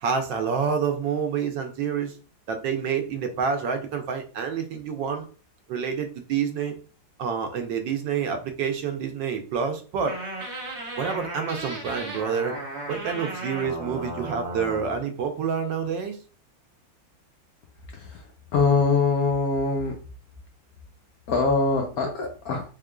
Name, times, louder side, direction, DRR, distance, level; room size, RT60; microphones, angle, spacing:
voice 1, 0.0-2.1 2.5-5.3 5.7-6.8 7.2-10.2 11.0-12.5 12.9-16.2, right 6 dB, 75° right, 5 dB, 1.3 m, -28 dB
sound 1, 10.1-15.0, right 1 dB, 45° right, 1.1 m, -35 dB
voice 2, 18.5-19.9 21.3-22.7, left 4 dB, 70° left, 1 dB, 0.9 m, -23 dB
3.7 x 3.6 x 2.3 m, 0.37 s
omnidirectional pair, 2.1 m